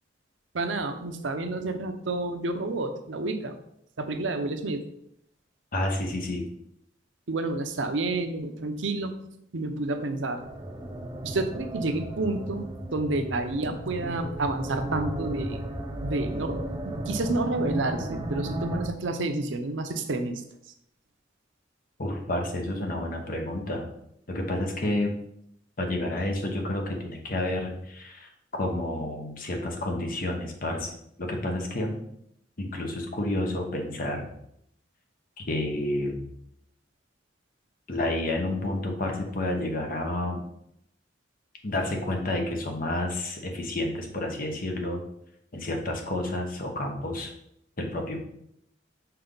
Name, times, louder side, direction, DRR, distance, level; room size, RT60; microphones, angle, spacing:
voice 1, 0.5-3.6 4.0-4.9 7.3-9.1 9.5-10.4 11.2-15.6 16.0-20.4, right 2 dB, 85° right, 7 dB, 0.7 m, -29 dB
voice 2, 5.7-6.4 22.0-23.9 24.3-25.1 25.8-30.9 31.2-32.0 32.6-34.3 35.4-36.3 37.9-40.4 41.6-45.0 45.5-47.3 47.8-48.2, left 1 dB, 50° left, 2 dB, 1.1 m, -30 dB
Church Drone, 10.4-18.9, right 1 dB, 20° right, 0.6 m, -34 dB
5.7 x 4.3 x 3.9 m, 0.75 s
head